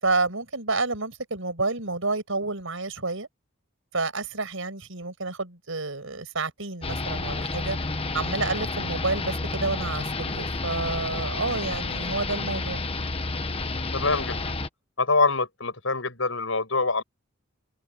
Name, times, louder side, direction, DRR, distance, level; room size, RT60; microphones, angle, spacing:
voice 1, 0.0-3.3 3.9-7.8 8.1-12.8, right 3 dB, 70° right, 6.1 m, -29 dB
sound 1, 6.8-14.7, left 3 dB, 25° left, 1.3 m, -30 dB
voice 2, 13.9-14.5 15.0-17.0, left 3 dB, 70° left, 7.3 m, -25 dB
head